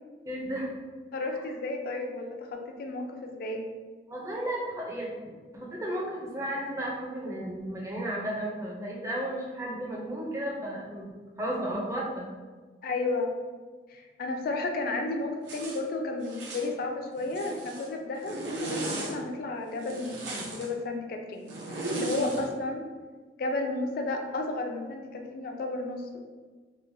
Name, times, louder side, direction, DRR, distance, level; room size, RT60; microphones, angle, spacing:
voice 1, 0.2-0.7 1.3-1.4 4.1-5.1 5.5-11.1 11.4-12.2, right 1 dB, 15° right, -4 dB, 0.4 m, -33 dB
voice 2, 1.1-3.6 12.8-13.3 13.9-21.5 21.9-22.8 23.4-26.2, left 2 dB, 55° left, 3 dB, 0.3 m, -33 dB
Zipper (clothing), 15.5-15.8 16.2-16.7 17.2-17.9 18.2-19.1 19.8-20.7 21.5-22.5, right 2 dB, 80° right, 0.6 m, -35 dB
3.0 x 2.1 x 2.5 m, 1.4 s
head